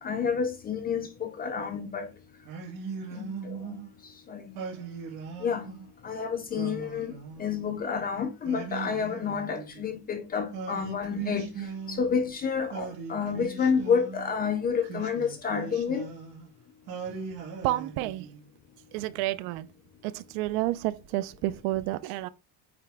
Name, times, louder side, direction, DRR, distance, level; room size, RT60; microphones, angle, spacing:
voice 1, 0.0-2.1 3.1-3.8 4.0-4.5 5.4-5.7 6.0-16.1, left 6 dB, 20° left, 0.4 m, -30 dB
Singing, 2.4-3.9 4.5-5.9 6.5-7.8 8.4-10.0 10.5-12.3 12.7-14.3 14.8-16.5 16.9-18.5, right 5 dB, 50° right, 2.2 m, -39 dB
voice 2, 17.6-18.3 18.9-19.7 20.0-22.3, right 16 dB, 65° right, 0.6 m, -30 dB
8.9 x 3.3 x 3.4 m
cardioid pair, 175°, 49 cm